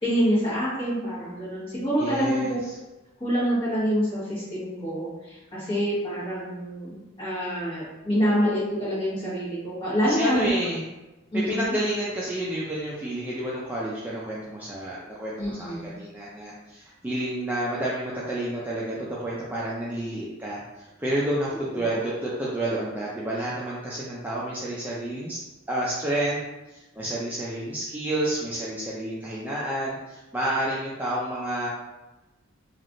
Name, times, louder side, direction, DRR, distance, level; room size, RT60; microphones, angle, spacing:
voice 1, 0.0-2.6 3.2-10.5 11.3-11.7 15.4-15.9 21.9-22.0, equal, 25° left, -9 dB, 1.3 m, -26 dB
voice 2, 2.0-2.6 10.0-10.8 11.3-25.4 25.7-26.4 26.7-31.7, right 1 dB, 10° right, -7 dB, 0.3 m, -30 dB
3.3 x 2.4 x 2.5 m, 1.1 s
head